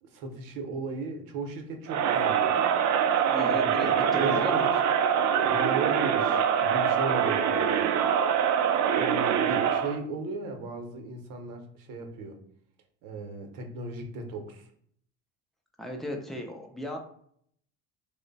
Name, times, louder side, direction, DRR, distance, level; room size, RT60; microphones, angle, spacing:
voice 1, 0.0-2.6 3.5-4.7 5.4-8.0 8.9-12.4 13.0-14.7, right 3 dB, 70° right, 4 dB, 0.8 m, -37 dB
Crowd, 1.9-10.0, right 8 dB, 55° right, 0.4 m, -24 dB
voice 2, 3.3-3.9 4.1-4.6 15.8-17.0, left 1 dB, ahead, 1 dB, 0.5 m, -35 dB
3.1 x 2.1 x 3.9 m, 0.66 s
cardioid pair, 110°, 34 cm